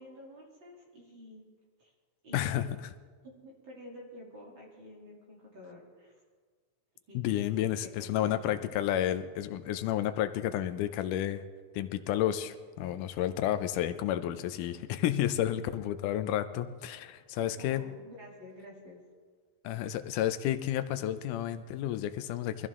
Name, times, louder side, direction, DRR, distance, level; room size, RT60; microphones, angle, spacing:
voice 1, 0.0-1.4 1.8-1.9 2.2-2.8 3.2-6.2 7.1-7.2 7.8-8.4 15.5-15.7 17.4-19.0, left 1 dB, 40° right, -3 dB, 3.6 m, -50 dB
voice 2, 2.3-2.7 7.1-11.4 11.7-17.8 19.6-22.7, left 12 dB, 90° left, 10 dB, 2.2 m, -31 dB
21.5 x 14.5 x 3.7 m, 1.5 s
omnidirectional pair, 3.6 m